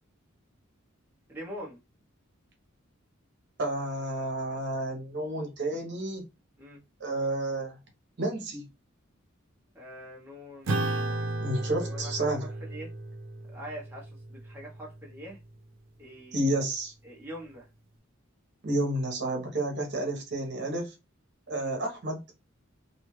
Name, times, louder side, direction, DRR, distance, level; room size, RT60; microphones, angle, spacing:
voice 1, 1.3-1.8 6.6-6.8 9.7-12.9 13.5-15.4 16.0-16.5 17.0-17.7 21.5-21.7, equal, 10° right, 0.8 m, -44 dB
voice 2, 3.6-6.2 7.0-7.8 8.2-8.7 11.4-12.5 16.3-16.9 18.6-20.9 21.5-22.2, right 1 dB, 55° right, 0.9 m, -30 dB
Acoustic guitar / Strum, 10.7-15.4, right 2 dB, 75° right, 0.7 m, -34 dB
2.7 x 2.4 x 3.0 m
head